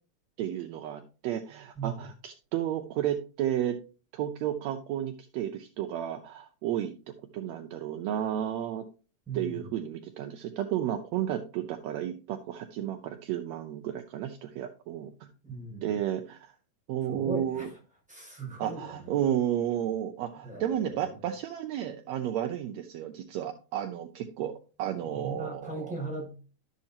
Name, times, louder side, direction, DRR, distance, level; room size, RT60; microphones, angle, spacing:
voice 1, 0.4-3.8 4.1-6.9 7.3-8.8 9.3-15.3 15.8-16.5 16.9-17.7 18.6-24.5 24.8-26.0, right 11 dB, 75° right, 4 dB, 1.6 m, -32 dB
voice 2, 1.8-2.1 9.3-9.6 15.4-15.9 17.1-17.8 18.1-19.1 20.4-21.0 25.0-26.3, right 3 dB, ahead, -2 dB, 5.4 m, -38 dB
12.0 x 7.2 x 2.8 m, 0.35 s
omnidirectional pair, 3.7 m